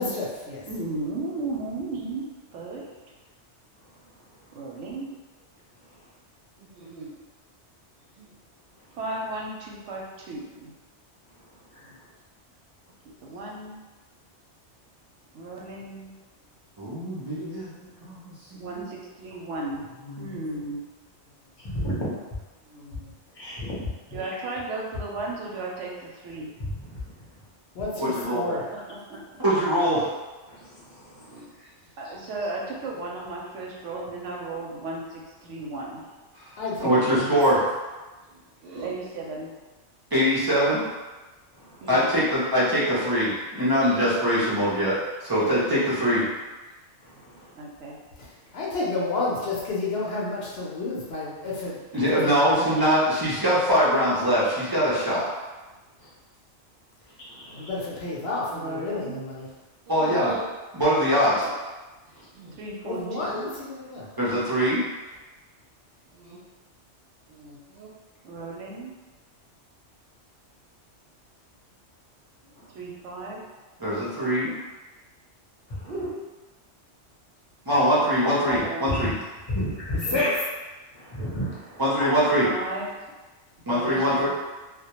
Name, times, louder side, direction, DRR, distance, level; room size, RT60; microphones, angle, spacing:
voice 1, 0.0-0.6 27.7-28.7 36.6-37.4 48.2-51.8 52.1-52.8 57.5-59.5 62.8-64.1 80.1-80.3, left 3 dB, 65° left, -5 dB, 0.7 m, -30 dB
voice 2, 0.7-2.9 4.5-5.1 9.0-10.7 13.2-13.8 15.3-16.1 18.6-19.9 20.2-20.8 24.1-26.6 28.5-28.8 29.1-29.2 32.0-36.1 38.8-39.5 41.8-42.1 47.6-48.0 58.5-59.2 62.6-63.5 68.2-68.9 72.7-73.4 78.5-79.1 82.4-82.9 83.7-84.3, right 2 dB, 90° right, -2 dB, 0.9 m, -35 dB
voice 3, 6.6-7.1 8.2-8.3 11.8-12.0 22.7-23.1 31.2-31.5 38.3-38.9 59.9-60.4 61.4-61.5 62.1-62.6 63.3-63.4 66.2-66.4 67.3-67.9 72.4-72.5 75.7-76.2 80.1-80.3, right 2 dB, 65° right, -6 dB, 0.7 m, -40 dB
voice 4, 16.8-18.8 20.0-20.4 28.0-28.5 29.4-30.1 36.8-37.7 40.1-40.8 41.9-46.3 51.9-55.3 59.9-60.3 60.7-61.4 64.2-64.8 73.8-74.5 77.7-79.1 81.8-82.5 83.7-84.3, equal, 35° right, -9 dB, 0.3 m, -23 dB
voice 5, 21.6-22.0 23.3-24.4 26.6-27.0 30.5-31.4 41.5-41.9 47.0-47.3 56.0-56.1 57.3-57.7 62.1-62.3 72.5-72.7 75.7-75.9 78.5-78.6 78.9-79.1 79.5-80.3 80.9-81.8, equal, 30° left, -7 dB, 0.5 m, -33 dB
2.1 x 2.1 x 2.8 m, 1.2 s
omnidirectional pair, 1.2 m